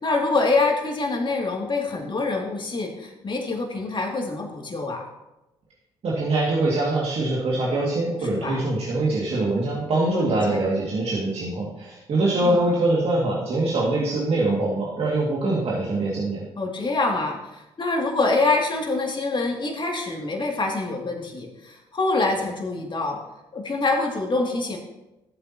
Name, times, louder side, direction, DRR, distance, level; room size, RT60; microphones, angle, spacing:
voice 1, 0.0-5.1 8.2-8.7 10.1-10.6 12.4-12.6 16.6-23.2 23.5-24.8, left 3 dB, 40° left, 1 dB, 2.5 m, -25 dB
voice 2, 6.0-16.4, right 2 dB, 50° right, -4 dB, 2.2 m, -23 dB
14.0 x 7.8 x 2.9 m, 0.97 s
hypercardioid pair, 45°, 13 cm